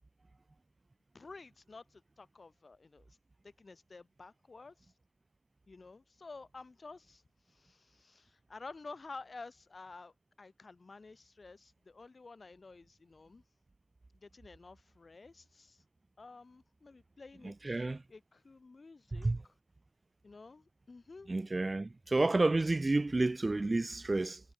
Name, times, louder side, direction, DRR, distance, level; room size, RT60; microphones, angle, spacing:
voice 1, 1.1-3.2 3.4-4.9 5.7-7.2 7.5-13.4 14.1-15.8 16.2-19.5 20.2-21.3, left 3 dB, 30° left, 7.1 m, -52 dB
voice 2, 17.4-18.0 19.1-19.4 21.3-24.4, right 2 dB, 20° right, 1.5 m, -30 dB
cardioid pair, 100°, 0 cm